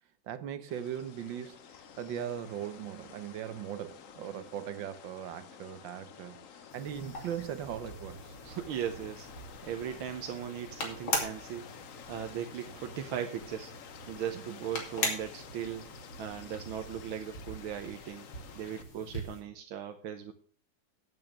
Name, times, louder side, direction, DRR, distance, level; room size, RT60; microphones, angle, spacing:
voice 1, 0.2-6.5 6.7-8.3 14.5-14.6, right 9 dB, 70° right, 1.6 m, -39 dB
sound 1, 0.7-18.8, left 8 dB, 55° left, 1.0 m, -51 dB
sound 2, 6.7-19.4, left 2 dB, 80° left, 3.5 m, -41 dB
voice 2, 8.4-9.3 9.6-11.6 12.1-15.9 16.2-18.3 18.6-20.3, right 9 dB, 85° right, 1.7 m, -38 dB
9.0 x 8.8 x 6.3 m
omnidirectional pair, 2.2 m